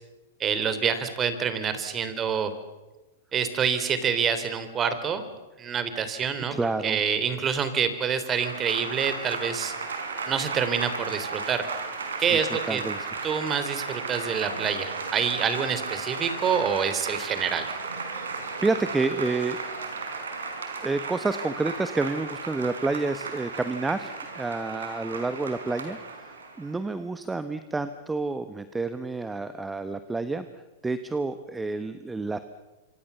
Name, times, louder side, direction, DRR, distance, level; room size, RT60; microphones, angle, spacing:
voice 1, 0.4-2.5 3.3-5.2 5.6-6.6 6.8-9.7 10.3-11.7 12.2-12.8 13.2-17.7, right 7 dB, 25° right, 11 dB, 3.5 m, -27 dB
voice 2, 6.5-7.0 12.3-12.4 12.7-13.1 18.6-19.6 20.8-30.5 30.8-32.4, right 3 dB, 10° right, 11 dB, 1.3 m, -29 dB
Applause / Crowd, 8.2-26.8, right 4 dB, 85° right, 5.1 m, -35 dB
26.5 x 25.5 x 7.0 m, 1.1 s
hypercardioid pair, 115°, 0 cm